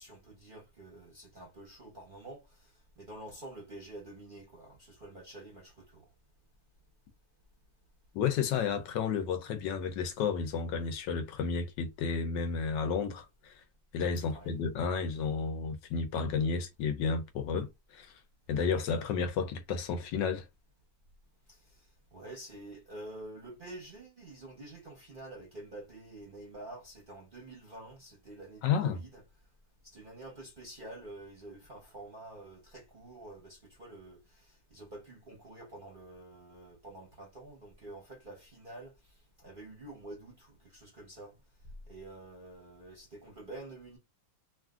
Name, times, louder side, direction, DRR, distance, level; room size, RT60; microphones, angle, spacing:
voice 1, 0.0-6.1 14.3-14.5 21.5-29.2 29.8-41.4 41.9-44.0, right 2 dB, 45° right, 0.7 m, -48 dB
voice 2, 8.1-13.5 13.9-18.1 18.5-20.5 28.6-29.0, left 6 dB, 75° left, 1.3 m, -32 dB
3.1 x 2.5 x 2.4 m
omnidirectional pair, 2.0 m